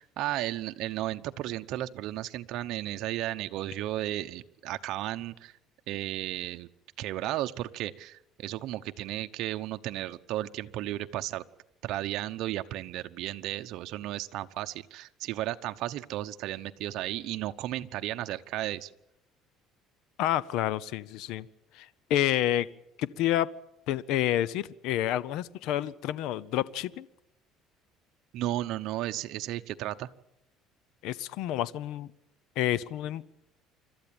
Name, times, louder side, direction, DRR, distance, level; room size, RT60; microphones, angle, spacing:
voice 1, 0.0-5.5 5.9-6.7 7.0-11.4 11.8-18.9 28.3-30.1, right 14 dB, 65° right, 9 dB, 0.9 m, -34 dB
voice 2, 20.2-21.5 21.7-22.7 23.0-23.5 23.9-27.1 31.0-32.1 32.6-33.2, left 12 dB, 70° left, 19 dB, 0.7 m, -29 dB
26.5 x 13.0 x 8.9 m, 0.85 s
cardioid pair, 145°, 0 cm